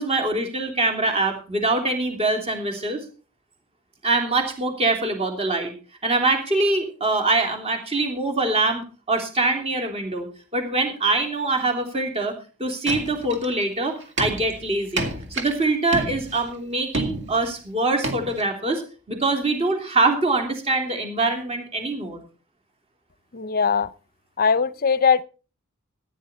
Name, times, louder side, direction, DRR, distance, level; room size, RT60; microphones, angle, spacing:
voice 1, 0.0-3.0 4.0-5.7 6.0-10.3 10.5-12.3 12.6-18.8 19.1-22.2, right 2 dB, 30° right, 3.0 m, -24 dB
sound 1, 12.9-13.6 14.0-15.6 15.9-16.5 16.9-17.5 18.0-18.4, right 2 dB, 55° right, 2.2 m, -30 dB
voice 2, 23.3-23.9 24.4-25.2, left 6 dB, 40° left, 0.6 m, -20 dB
15.5 x 10.0 x 4.3 m
head